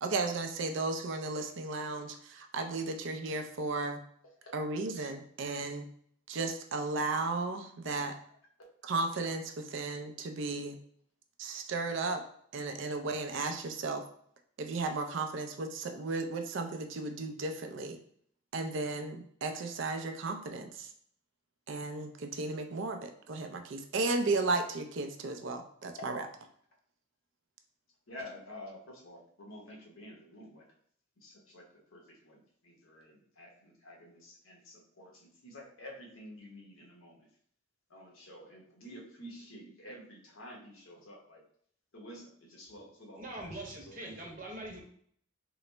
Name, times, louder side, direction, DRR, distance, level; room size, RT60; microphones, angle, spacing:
voice 1, 0.0-4.0 4.5-5.9 6.3-8.1 8.9-10.8 11.4-12.2 12.5-14.1 14.6-18.0 18.5-20.9 21.7-26.2, right 3 dB, 65° right, 5 dB, 0.4 m, -34 dB
voice 2, 28.1-30.7 31.2-37.3 37.9-41.4 41.9-44.1, left 1 dB, 75° left, -1 dB, 1.0 m, -50 dB
voice 3, 43.2-44.8, right 1 dB, 40° right, -1 dB, 0.8 m, -43 dB
3.8 x 2.0 x 3.2 m, 0.63 s
head